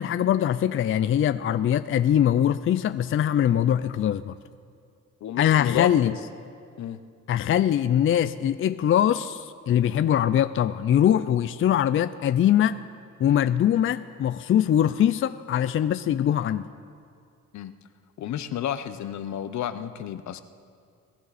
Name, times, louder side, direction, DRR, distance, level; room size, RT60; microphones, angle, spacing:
voice 1, 0.0-4.3 5.4-6.1 7.3-12.8 13.2-16.7, left 10 dB, 45° left, 12 dB, 0.4 m, -22 dB
voice 2, 5.2-6.2 6.8-7.0 17.5-17.7 18.2-20.4, left 10 dB, 65° left, 12 dB, 0.8 m, -31 dB
22.0 x 13.0 x 4.2 m, 2.3 s
cardioid pair, 90°, 30 cm